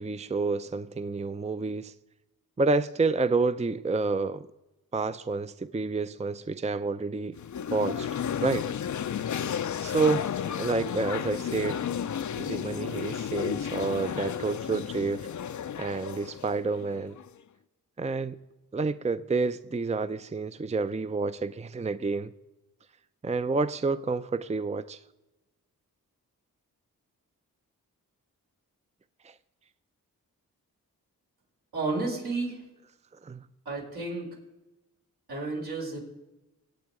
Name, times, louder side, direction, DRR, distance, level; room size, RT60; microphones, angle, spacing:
voice 1, 0.0-1.9 2.6-4.5 4.9-7.4 7.7-8.1 8.4-8.7 9.8-11.8 12.4-15.3 15.8-17.2 18.0-18.4 18.7-22.3 23.2-25.0 29.2-29.3 33.2-33.5, right 3 dB, 20° right, 0.6 m, -29 dB
sound 1, 7.4-17.4, left 8 dB, 50° left, 0.6 m, -33 dB
voice 2, 31.7-32.6 33.7-34.3 35.3-36.0, right 3 dB, 80° right, 5.4 m, -31 dB
23.0 x 8.7 x 4.9 m
cardioid pair, 45°, 37 cm